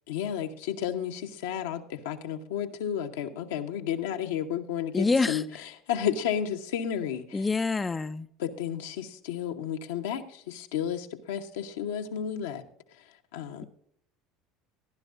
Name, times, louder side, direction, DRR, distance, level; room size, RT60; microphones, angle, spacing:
voice 1, 0.1-7.4 8.4-12.6 13.0-13.6, left 9 dB, 75° left, 1.0 m, -32 dB
voice 2, 4.9-5.4 7.3-8.3, left 3 dB, 20° left, 0.5 m, -26 dB
15.0 x 11.5 x 2.5 m
hypercardioid pair, 70°, 0 cm